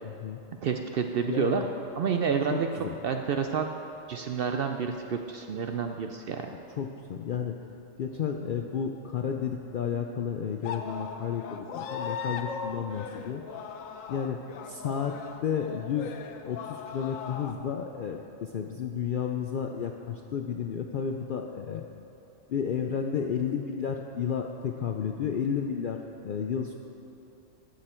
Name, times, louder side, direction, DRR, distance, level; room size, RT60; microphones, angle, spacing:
voice 1, 0.6-1.6 2.0-2.7 3.0-3.7 4.1-6.5, right 6 dB, 65° right, 5 dB, 0.6 m, -29 dB
voice 2, 1.3-1.7 2.5-2.9 6.8-7.5 8.0-13.4 14.1-14.4 14.7-16.2 16.4-21.8 22.5-26.8, left 7 dB, 65° left, 3 dB, 0.5 m, -32 dB
sound 1, 10.6-17.5, left 6 dB, 85° left, 1.1 m, -38 dB
14.5 x 6.5 x 4.4 m, 2.8 s
omnidirectional pair, 1.3 m